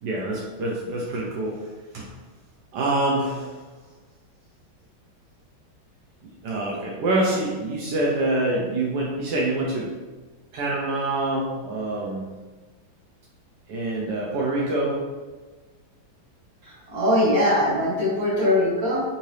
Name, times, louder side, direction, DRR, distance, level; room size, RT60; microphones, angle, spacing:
voice 1, 0.0-1.6 1.9-2.1 2.7-3.6 6.4-9.9 10.5-12.2 13.7-15.0, right 2 dB, 75° right, -3 dB, 1.0 m, -25 dB
voice 2, 16.9-19.0, left 1 dB, 40° right, -6 dB, 1.0 m, -21 dB
3.8 x 2.7 x 3.1 m, 1.3 s
omnidirectional pair, 2.2 m